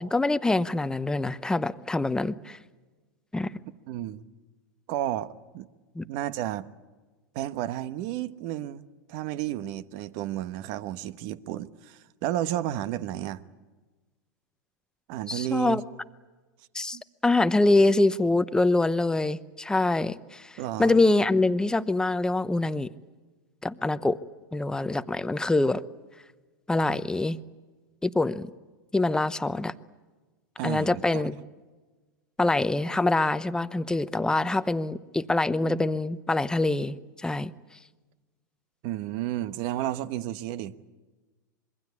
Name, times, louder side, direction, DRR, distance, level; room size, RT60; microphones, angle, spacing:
voice 1, 0.0-2.6 3.3-3.5 5.9-6.0 15.3-15.8 16.7-22.9 23.6-24.2 24.5-25.8 26.7-27.4 28.0-28.5 28.9-29.7 30.6-31.4 32.4-37.5, left 2 dB, 5° left, 0.8 m, -25 dB
voice 2, 3.9-4.2 4.9-5.7 6.1-6.7 7.3-8.8 9.1-13.4 15.1-15.8 16.9-17.0 20.6-21.1 30.6-31.2 38.8-40.7, right 13 dB, 55° right, 1.2 m, -32 dB
26.0 x 22.5 x 8.4 m
hypercardioid pair, 110°, 10 cm